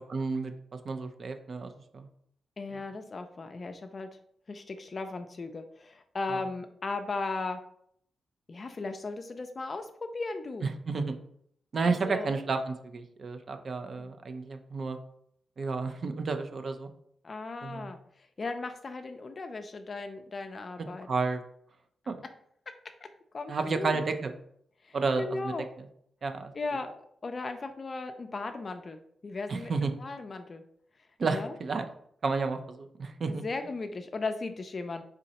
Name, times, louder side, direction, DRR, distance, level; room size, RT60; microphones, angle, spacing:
voice 1, 0.1-0.5 0.8-2.1 2.7-2.8 6.3-6.4 10.6-11.1 11.7-15.0 15.6-16.9 17.6-17.9 21.1-21.4 22.1-22.2 23.5-24.3 24.9-25.9 26.2-26.5 29.5-29.9 31.2-31.9 32.2-33.4, right 4 dB, 55° right, 7 dB, 0.5 m, -31 dB
voice 2, 2.6-4.1 4.5-7.6 8.5-10.7 11.8-12.3 14.0-14.1 17.2-18.0 18.4-21.1 23.3-24.0 24.8-25.7 26.5-30.6 31.3-31.5 33.2-35.0, left 3 dB, 40° left, 7 dB, 0.4 m, -37 dB
4.1 x 3.7 x 2.8 m, 0.68 s
cardioid pair, 90°, 0 cm